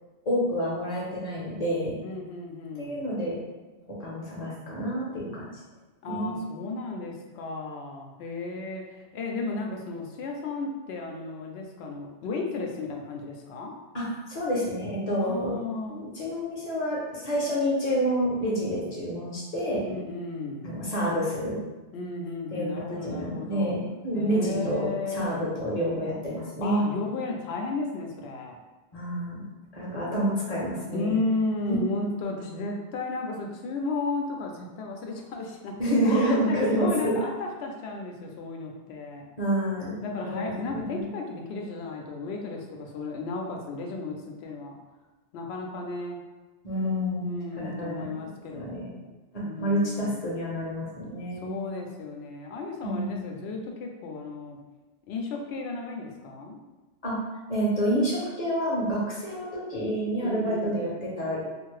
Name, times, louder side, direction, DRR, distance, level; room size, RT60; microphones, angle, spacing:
voice 1, 0.2-1.9 2.8-3.4 4.0-5.5 6.0-6.4 13.9-15.5 15.9-19.8 20.6-21.6 22.5-26.8 28.9-29.4 29.7-31.2 31.7-31.8 35.8-37.1 39.4-41.1 46.6-48.1 48.5-48.9 49.3-51.5 52.8-53.2 57.0-57.2 57.5-61.4, equal, 40° left, -6 dB, 0.8 m, -28 dB
voice 2, 2.0-3.1 6.0-13.7 15.2-16.0 19.9-20.8 21.9-23.7 24.1-25.3 26.6-28.5 30.9-35.7 36.0-39.3 40.0-44.8 45.3-46.2 47.2-49.0 49.4-50.2 51.4-54.6 55.1-56.6 60.2-60.7, left 3 dB, 70° left, 1 dB, 0.8 m, -34 dB
2.7 x 2.4 x 3.1 m, 1.2 s
omnidirectional pair, 1.2 m